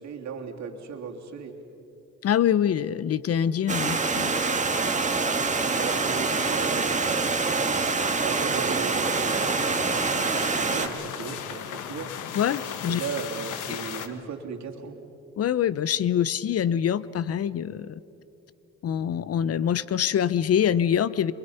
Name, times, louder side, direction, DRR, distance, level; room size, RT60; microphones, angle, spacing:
voice 1, 0.0-1.5 5.6-7.8 8.2-9.6 10.2-12.1 12.9-15.0, right 6 dB, 65° right, 1 dB, 2.8 m, -36 dB
voice 2, 2.2-4.4 12.3-13.0 15.4-18.0 18.8-21.3, left 9 dB, 50° left, 18 dB, 0.7 m, -25 dB
Stream, 3.7-10.9, right 4 dB, 25° right, 1.8 m, -25 dB
sound 1, 9.0-14.1, left 9 dB, 85° left, 1.4 m, -37 dB
29.5 x 23.0 x 5.6 m, 2.9 s
cardioid pair, 90°, 30 cm